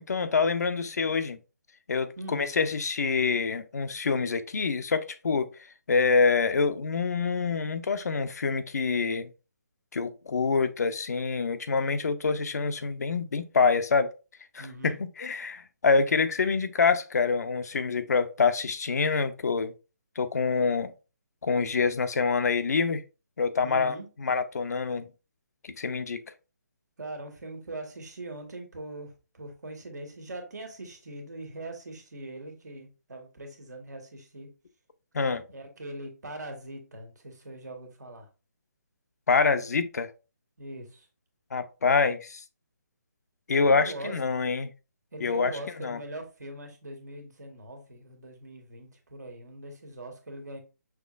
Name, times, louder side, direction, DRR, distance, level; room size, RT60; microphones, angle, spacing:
voice 1, 0.0-1.4 1.9-5.5 5.9-9.3 9.9-14.1 14.5-19.7 20.2-20.9 21.4-23.0 23.4-25.1 25.6-26.2 35.1-35.4 39.3-40.1 41.5-42.4 43.5-44.7 45.2-46.0, left 4 dB, 65° left, 0.6 m, -26 dB
voice 2, 2.2-2.5 14.6-15.0 23.6-24.1 27.0-34.5 35.5-38.3 40.6-41.1 43.5-44.1 45.1-50.6, right 2 dB, 75° right, 1.6 m, -41 dB
5.9 x 3.1 x 2.5 m
figure-of-eight pair, 150°, 9 cm